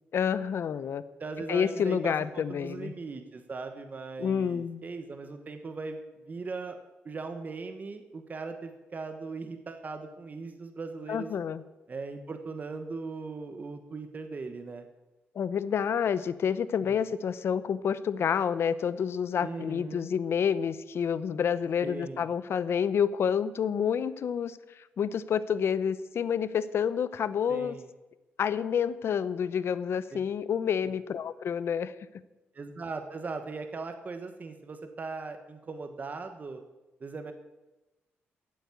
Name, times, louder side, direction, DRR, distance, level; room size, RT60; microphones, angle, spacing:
voice 1, 0.1-1.0 1.5-2.9 4.2-4.8 11.1-11.6 15.3-27.7 28.4-31.9, left 7 dB, 65° left, 15 dB, 0.8 m, -29 dB
voice 2, 1.2-6.0 6.3-6.8 7.0-11.3 11.9-14.8 16.8-17.0 19.4-20.1 21.8-22.3 27.5-27.9 30.1-30.2 32.5-36.6 37.0-37.3, right 4 dB, 35° right, 7 dB, 1.3 m, -39 dB
14.5 x 8.5 x 8.4 m, 1.1 s
cardioid pair, 105°, 5 cm